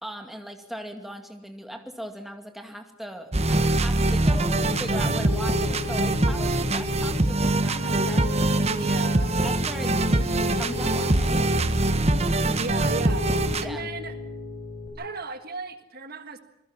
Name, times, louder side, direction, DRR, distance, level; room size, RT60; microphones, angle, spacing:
voice 1, 0.0-9.1 9.4-11.5 13.5-13.9, equal, ahead, 5 dB, 2.3 m, -39 dB
sound 1, 3.3-13.7, right 2 dB, 30° right, 1.2 m, -23 dB
Piano, 4.5-14.9, left 3 dB, 35° left, 6.5 m, -36 dB
voice 2, 8.7-9.3 12.6-14.1 15.0-16.4, right 3 dB, 45° right, 8 dB, 1.6 m, -35 dB
27.0 x 21.0 x 6.0 m, 0.89 s
head